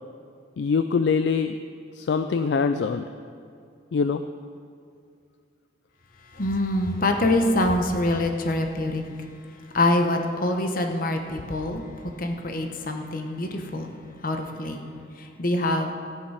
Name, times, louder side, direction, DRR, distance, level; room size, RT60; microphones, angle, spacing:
voice 1, 0.6-1.6 2.0-3.1 3.9-4.2, left 5 dB, 65° left, 9 dB, 0.3 m, -23 dB
voice 2, 6.3-9.0 9.7-11.8 12.2-13.9 14.2-14.9 15.2-15.9, left 1 dB, 50° left, 4 dB, 1.0 m, -25 dB
14.0 x 9.0 x 4.8 m, 2.3 s
head